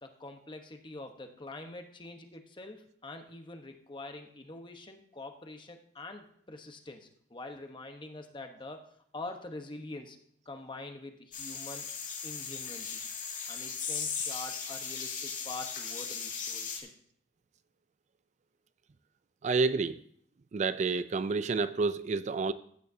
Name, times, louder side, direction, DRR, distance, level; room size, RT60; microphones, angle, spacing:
voice 1, 0.0-8.8 9.1-10.2 10.5-11.9 12.2-13.0 13.5-16.9, left 2 dB, 25° left, 1.0 m, -45 dB
sound 1, 11.3-16.8, left 6 dB, 45° left, 2.1 m, -37 dB
voice 2, 19.4-20.0 20.5-22.5, right 4 dB, 40° right, 0.4 m, -29 dB
14.5 x 9.2 x 2.7 m
head